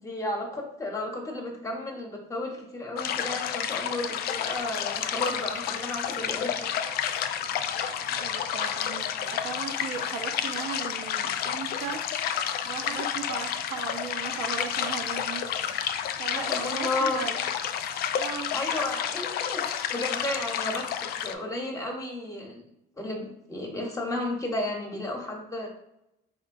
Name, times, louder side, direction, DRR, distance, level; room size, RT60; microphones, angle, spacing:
voice 1, 0.0-6.7 16.3-17.3 18.5-20.9 21.2-22.7 23.0-25.7, left 1 dB, 20° left, 1 dB, 1.0 m, -33 dB
sound 1, 3.0-21.3, left 9 dB, 70° left, 0.4 m, -30 dB
voice 2, 7.8-12.0 12.6-15.4 16.2-17.4 18.2-18.5, right 6 dB, 80° right, 4 dB, 0.7 m, -37 dB
4.3 x 3.6 x 2.5 m, 0.84 s
cardioid pair, 110°, 17 cm